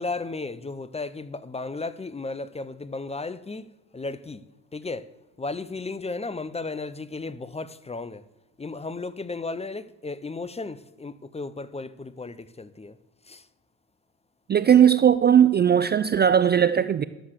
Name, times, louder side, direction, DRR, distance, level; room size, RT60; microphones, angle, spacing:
voice 1, 0.0-3.7 3.9-4.4 4.7-5.1 5.4-8.2 8.6-13.0 13.2-13.5, left 3 dB, 15° left, 0.6 m, -34 dB
voice 2, 14.5-17.0, right 9 dB, 25° right, 0.4 m, -18 dB
11.5 x 7.2 x 6.6 m
supercardioid pair, 65°, 40 cm